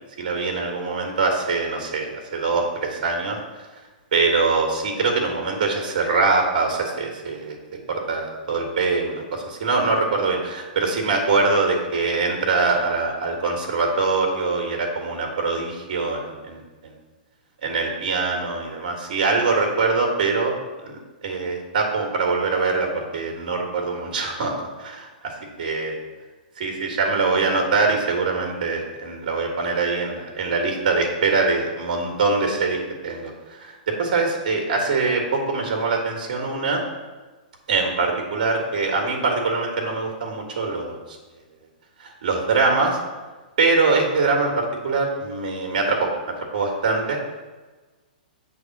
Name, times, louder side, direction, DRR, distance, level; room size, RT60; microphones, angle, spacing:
voice 1, 0.2-3.4 4.1-7.5 7.9-16.9 17.6-20.5 21.2-25.1 25.6-25.9 26.6-36.8 37.7-41.2 42.0-43.0 43.6-47.2, right 4 dB, 65° right, 1 dB, 1.6 m, -23 dB
8.0 x 3.5 x 6.0 m, 1.2 s
hypercardioid pair, 125°, 5 cm